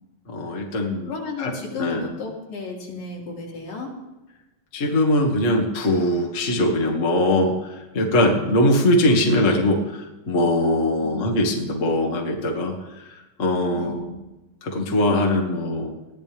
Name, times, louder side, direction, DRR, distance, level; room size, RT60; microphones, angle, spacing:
voice 1, 0.3-1.1 1.4-1.5 1.8-2.1 4.7-14.0 14.6-15.9, left 1 dB, 25° left, 0 dB, 1.8 m, -21 dB
voice 2, 1.1-3.9 11.0-11.3 13.7-14.2, left 3 dB, 70° left, -3 dB, 5.0 m, -33 dB
21.0 x 15.0 x 3.5 m, 1.0 s
omnidirectional pair, 4.1 m